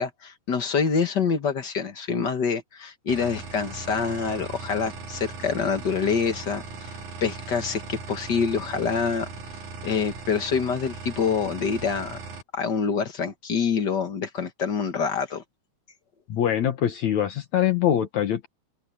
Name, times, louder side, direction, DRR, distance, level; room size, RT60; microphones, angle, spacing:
voice 1, 0.0-9.3 9.8-12.2 12.5-15.4, left 6 dB, 45° left, 1.7 m, -26 dB
sound 1, 3.1-12.4, right 4 dB, 80° right, 4.5 m, -38 dB
voice 2, 16.3-18.5, left 10 dB, 70° left, 2.7 m, -23 dB
open air
omnidirectional pair, 3.4 m